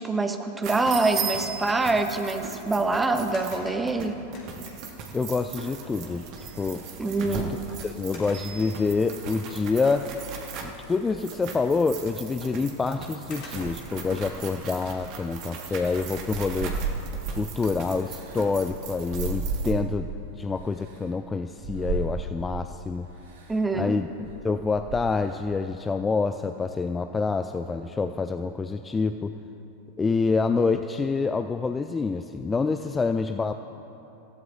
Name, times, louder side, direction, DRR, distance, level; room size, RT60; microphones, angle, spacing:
voice 1, 0.0-4.2 7.0-7.5 23.5-24.0, right 3 dB, 10° right, 6 dB, 1.0 m, -25 dB
sound 1, 0.6-19.7, right 6 dB, 40° right, 1.6 m, -38 dB
sound 2, 3.3-5.2 6.4-6.5 6.9-7.1 8.1-9.3 9.8-9.9 12.3-12.4 13.3-14.0 16.3-16.7 17.2-17.3, left 2 dB, 40° left, 3.4 m, -47 dB
voice 2, 5.1-6.3 6.6-6.8 7.2-10.1 10.6-16.8 17.3-23.1 23.7-29.3 30.0-33.5, left 4 dB, 15° left, 9 dB, 0.4 m, -27 dB
sound 3, 13.5-14.7 15.6-17.5 18.0-20.2 20.8-21.0 21.6-22.7 23.3-23.6 24.0-25.3, right 4 dB, 55° right, 1.7 m, -34 dB
26.0 x 15.5 x 2.6 m, 3.0 s
figure-of-eight pair, 90°, 0 cm